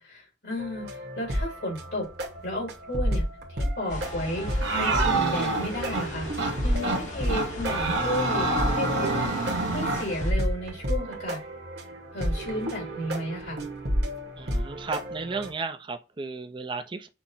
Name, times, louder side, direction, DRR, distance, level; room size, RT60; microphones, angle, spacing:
voice 1, 0.0-2.1 2.4-6.3 6.6-9.3 9.7-11.4 12.1-13.6, left 1 dB, 75° left, 2.6 m, -33 dB
sound 1, 0.6-15.5, equal, 60° right, 1.2 m, -31 dB
sound 2, 3.9-10.3, left 1 dB, 40° left, 0.9 m, -38 dB
sound 3, 4.6-6.1 6.4-6.5 6.8-7.0 7.3-10.1, right 2 dB, 85° right, 1.1 m, -26 dB
voice 2, 14.4-17.1, right 4 dB, 25° right, 0.4 m, -34 dB
6.0 x 2.0 x 4.0 m
head